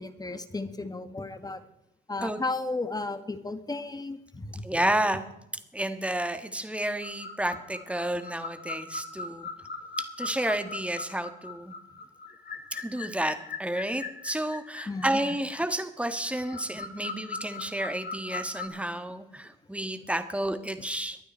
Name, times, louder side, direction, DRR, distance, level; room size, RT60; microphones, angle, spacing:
voice 1, 0.0-1.6 2.1-4.8 14.9-15.1, left 3 dB, 20° left, 10 dB, 1.6 m, -34 dB
voice 2, 4.6-5.2 5.7-9.5 10.0-11.7 12.7-21.2, right 1 dB, 5° right, 9 dB, 1.5 m, -31 dB
sound 1, 7.0-18.7, left 4 dB, 50° left, 2.6 m, -40 dB
23.0 x 9.0 x 4.4 m, 0.80 s
cardioid pair, 90°, 20 cm